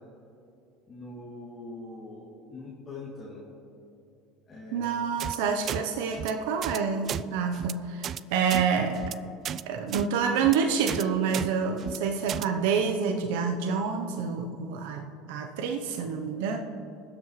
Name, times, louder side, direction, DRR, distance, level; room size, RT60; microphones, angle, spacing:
voice 1, 0.9-3.4 4.5-4.9, left 2 dB, 30° left, -6 dB, 2.7 m, -42 dB
voice 2, 4.7-9.0 9.7-16.6, right 6 dB, 80° right, 4 dB, 0.8 m, -28 dB
sound 1, 5.2-5.4 5.7-5.8 6.1-6.3 6.6-6.8 7.1-7.2 7.5-7.7 8.0-8.2 8.5-8.6 9.0-9.1 9.4-9.6 9.9-10.1 10.4-10.6 10.9-11.0 11.3-11.5 11.8-12.0 12.3-12.5, right 9 dB, 45° right, 0.3 m, -33 dB
22.5 x 7.5 x 3.2 m, 2.7 s
supercardioid pair, 110°, 0 cm